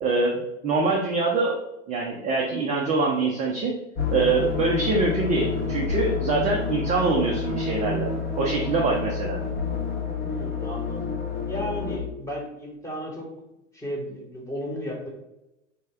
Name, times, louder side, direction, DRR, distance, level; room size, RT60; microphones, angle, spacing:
voice 1, 0.0-1.6 1.9-3.7 4.1-8.1 8.4-9.4, right 3 dB, 20° right, -1 dB, 0.4 m, -24 dB
sound 1, 4.0-12.0, left 5 dB, 25° left, 0.7 m, -29 dB
voice 2, 10.2-11.1 11.4-13.3 13.7-15.1, equal, 10° left, -3 dB, 1.1 m, -34 dB
3.5 x 2.1 x 3.4 m, 0.92 s
hypercardioid pair, 105°, 37 cm